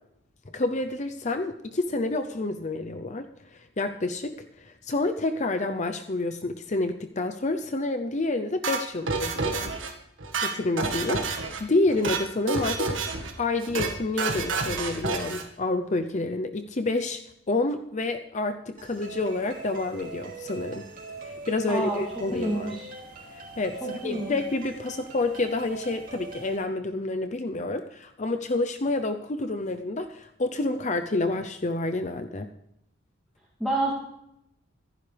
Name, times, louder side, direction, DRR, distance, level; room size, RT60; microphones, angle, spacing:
voice 1, 0.5-9.8 10.4-17.2 17.5-20.9 21.2-22.8 23.3-32.5, left 2 dB, 35° left, 7 dB, 0.7 m, -29 dB
sound 1, 8.6-9.9 10.2-11.6 11.9-12.2 12.5-13.3 13.6-13.9 14.2-15.5, right 3 dB, 70° right, 1.8 m, -29 dB
sound 2, 18.8-26.6, right 3 dB, 45° right, 2.9 m, -42 dB
voice 2, 21.7-22.0 22.3-22.9 23.8-24.3 33.6-33.9, right 1 dB, ahead, -6 dB, 2.6 m, -28 dB
25.5 x 10.5 x 3.4 m, 0.80 s
head